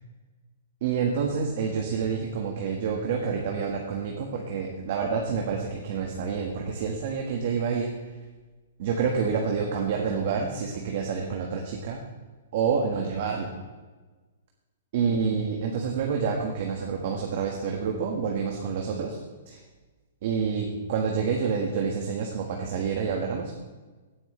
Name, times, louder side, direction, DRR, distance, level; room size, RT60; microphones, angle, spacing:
voice 1, 0.8-7.9 8.8-12.0 12.5-13.5 14.9-19.2 19.4-19.6 20.2-23.5, right 6 dB, 50° right, 1 dB, 1.6 m, -28 dB
17.0 x 9.1 x 3.3 m, 1.3 s
hypercardioid pair, 160°, 0 cm